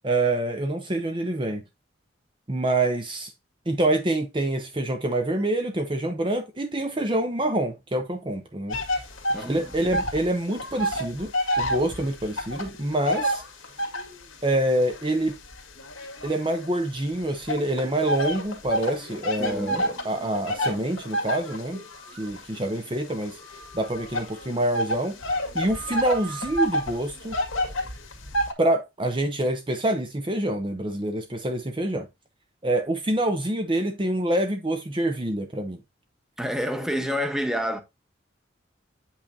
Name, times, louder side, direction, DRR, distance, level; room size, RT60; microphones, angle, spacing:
voice 1, 0.0-1.6 2.5-3.3 3.7-9.0 9.4-13.4 14.4-15.3 16.2-21.8 22.2-23.4 23.7-27.4 28.6-32.1 32.6-35.8, right 1 dB, 25° right, 0.7 m, -26 dB
sound 1, 8.7-10.3 10.5-14.2 14.8-16.9 17.5-28.5, equal, 85° left, 1.8 m, -29 dB
voice 2, 9.3-9.7 19.4-19.9 36.4-37.8, equal, 5° right, 1.0 m, -28 dB
nose wisthle, 21.7-22.4 23.4-24.6 25.5-27.0, right 4 dB, 65° right, 3.0 m, -44 dB
8.4 x 5.6 x 2.7 m
head